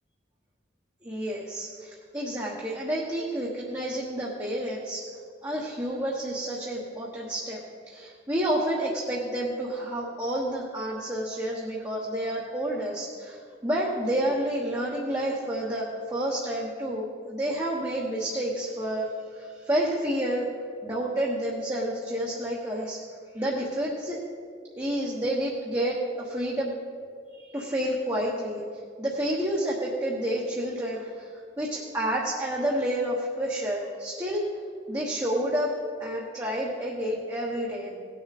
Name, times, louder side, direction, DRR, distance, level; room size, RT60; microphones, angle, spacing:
voice 1, 1.0-5.0 5.4-19.1 19.3-20.5 20.8-23.0 23.3-24.2 24.8-26.7 27.3-28.6 29.0-31.3 31.6-34.5 34.9-35.7 36.0-38.0, right 1 dB, 20° right, -5 dB, 1.2 m, -29 dB
18.0 x 6.9 x 4.2 m, 2.1 s
head